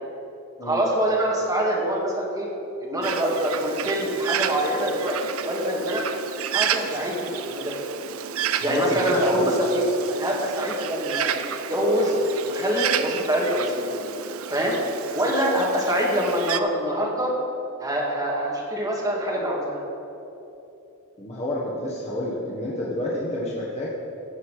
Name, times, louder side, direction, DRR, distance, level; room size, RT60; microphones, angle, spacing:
voice 1, 0.6-2.5 2.8-6.0 6.5-7.7 8.6-11.3 11.7-12.2 12.4-13.9 14.5-14.8 15.1-17.3 17.8-19.8, equal, 15° right, -3 dB, 2.1 m, -25 dB
Bird, 3.0-16.6, right 8 dB, 75° right, 0.5 m, -31 dB
voice 2, 8.6-9.5 21.2-23.9, left 1 dB, 30° left, -5 dB, 1.4 m, -28 dB
16.5 x 6.9 x 4.9 m, 2.9 s
head